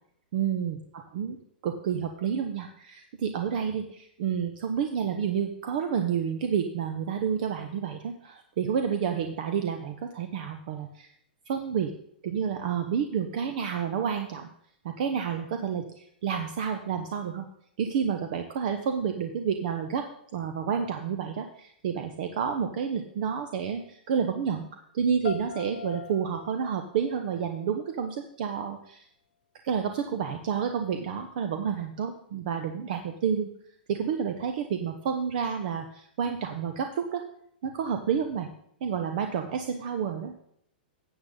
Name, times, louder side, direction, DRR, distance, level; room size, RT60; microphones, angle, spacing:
voice 1, 0.3-0.8 1.1-1.4 1.6-11.1 11.5-11.9 12.2-14.5 14.8-17.5 17.8-20.1 20.3-24.7 24.9-29.0 29.6-33.5 33.9-37.2 37.6-38.5 38.8-40.3, right 7 dB, 60° right, 6 dB, 1.0 m, -29 dB
sound 1, 25.2-28.2, left 7 dB, 80° left, 0.6 m, -42 dB
13.0 x 8.2 x 3.9 m, 0.69 s
hypercardioid pair, 115°, 5 cm